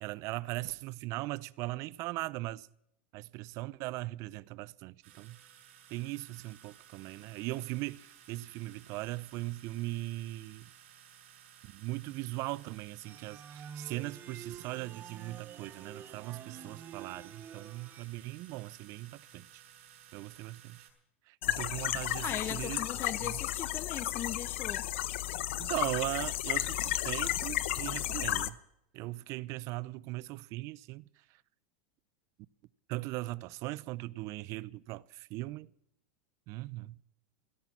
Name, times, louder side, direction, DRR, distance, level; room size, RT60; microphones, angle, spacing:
voice 1, 0.0-2.7 3.1-5.4 5.9-10.7 11.7-19.6 20.1-20.8 21.3-22.9 23.2-23.4 25.6-28.6 28.9-31.0 32.9-35.7 36.5-37.0, right 19 dB, 50° right, 0.6 m, -39 dB
sound 1, 5.0-20.9, right 9 dB, 70° right, 6.1 m, -57 dB
sound 2, 13.0-18.1, right 8 dB, 30° right, 1.1 m, -49 dB
sound 3, 21.4-28.5, left 14 dB, 75° left, 0.9 m, -33 dB
voice 2, 22.2-24.9, left 11 dB, 35° left, 0.9 m, -39 dB
17.0 x 12.5 x 6.0 m
hypercardioid pair, 110°, 7 cm